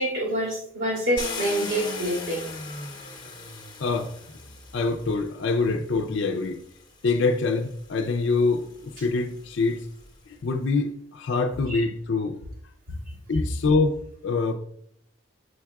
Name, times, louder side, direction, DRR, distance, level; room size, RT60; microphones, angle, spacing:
voice 1, 0.0-2.4 11.7-11.8, right 1 dB, 80° right, -5 dB, 2.3 m, -26 dB
Car, 1.2-5.3 6.2-6.3 6.8-10.1, left 3 dB, 20° left, 0.8 m, -38 dB
voice 2, 3.8-4.1 4.7-6.6 7.0-9.9 10.3-12.4 13.3-14.0 14.2-14.5, left 3 dB, 60° left, 4 dB, 0.4 m, -25 dB
7.4 x 6.4 x 2.3 m, 0.69 s
head